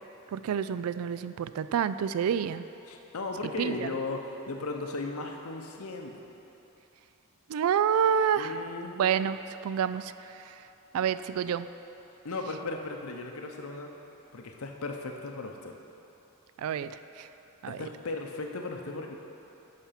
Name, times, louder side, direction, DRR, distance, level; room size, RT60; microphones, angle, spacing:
voice 1, 0.3-2.7 3.6-3.8 7.5-8.6 9.0-10.5 10.9-11.7 16.6-17.3 17.6-17.8, right 8 dB, 75° right, 14 dB, 0.3 m, -28 dB
voice 2, 2.9-6.2 8.3-9.0 12.2-13.9 14.3-15.7 17.7-19.2, left 3 dB, 70° left, 3 dB, 0.7 m, -36 dB
10.5 x 5.8 x 5.7 m, 3.0 s
head